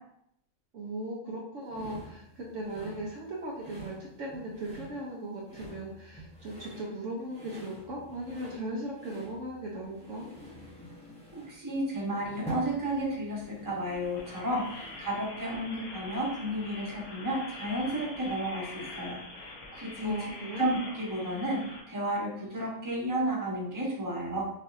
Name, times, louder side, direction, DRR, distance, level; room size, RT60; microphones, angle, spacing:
voice 1, 0.7-10.3 20.0-20.7, right 1 dB, 65° right, -3 dB, 1.1 m, -38 dB
sound 1, 1.7-15.2, right 1 dB, 5° left, 0.6 m, -47 dB
voice 2, 11.3-20.2 20.6-24.5, right 1 dB, 15° right, -5 dB, 1.1 m, -32 dB
sound 2, 13.8-21.8, left 2 dB, 65° left, 1.1 m, -44 dB
6.2 x 2.7 x 2.6 m, 0.76 s
omnidirectional pair, 1.5 m